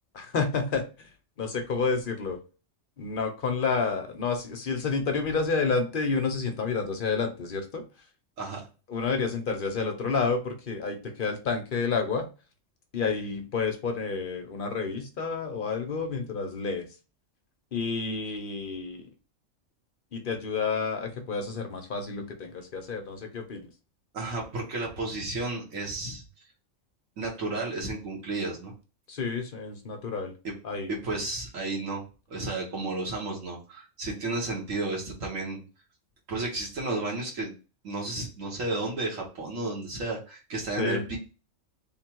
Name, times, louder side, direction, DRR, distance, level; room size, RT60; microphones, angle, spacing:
voice 1, 0.1-0.8 1.4-2.4 3.0-7.8 8.9-12.3 12.9-16.9 17.7-19.1 20.1-23.7 29.1-30.3 30.6-30.9 40.8-41.1, left 4 dB, 50° left, 5 dB, 0.7 m, -29 dB
voice 2, 24.1-26.2 27.2-28.7 30.4-30.5 30.9-32.0 32.3-35.6 36.3-37.5 37.8-41.2, right 2 dB, 90° right, -2 dB, 1.6 m, -32 dB
3.6 x 2.3 x 4.4 m, 0.32 s
omnidirectional pair, 1.3 m